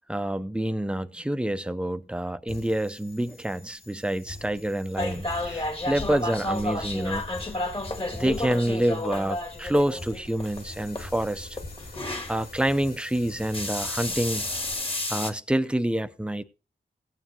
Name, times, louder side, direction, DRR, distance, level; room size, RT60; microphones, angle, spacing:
voice 1, 0.1-7.2 8.1-9.4 9.6-11.6 12.3-14.5 15.1-16.4, right 1 dB, 5° right, 0.6 m, -27 dB
sound 1, 2.5-14.7, left 2 dB, 50° left, 5.5 m, -45 dB
sound 2, 5.0-12.4 13.4-15.3, left 2 dB, 30° left, 1.8 m, -31 dB
17.0 x 9.4 x 2.8 m
wide cardioid pair, 150°, 20 cm